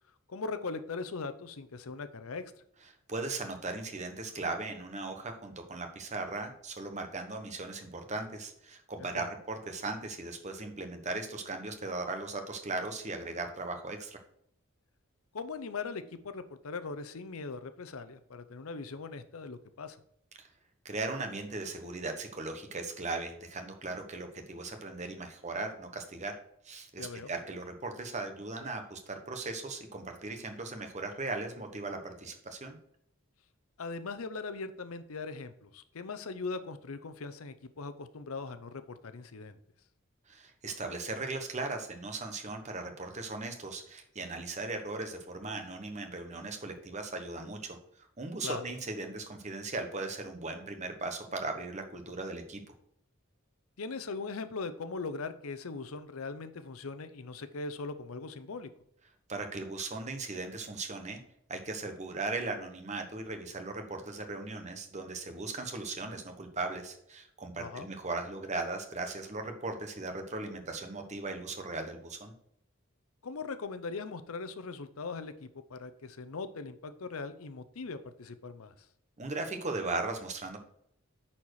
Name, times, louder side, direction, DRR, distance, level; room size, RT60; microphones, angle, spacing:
voice 1, 0.3-2.4 9.0-9.3 15.3-20.0 27.0-27.3 33.8-39.6 48.4-48.6 53.8-58.7 67.6-67.9 73.2-78.9, left 4 dB, 90° left, 11 dB, 0.7 m, -40 dB
voice 2, 3.1-14.2 20.4-20.5 20.8-26.3 26.6-32.8 40.3-47.8 48.2-52.6 59.3-61.2 61.5-72.3 79.2-80.6, right 3 dB, 35° right, 6 dB, 1.2 m, -38 dB
9.7 x 4.4 x 4.7 m, 0.72 s
head